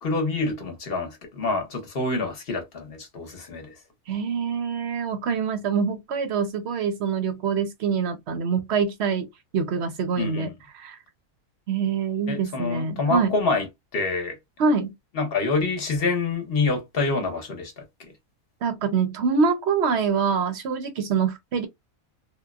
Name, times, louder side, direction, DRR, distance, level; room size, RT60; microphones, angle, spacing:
voice 1, 0.0-3.8 10.2-10.5 12.3-14.4 15.1-17.7 18.0-18.1, left 3 dB, 50° left, 1.0 m, -27 dB
voice 2, 4.1-9.3 9.5-10.5 10.8-11.0 11.7-13.3 14.6-14.9 18.6-21.7, right 5 dB, 60° right, 0.8 m, -25 dB
2.9 x 2.1 x 2.3 m
omnidirectional pair, 1.4 m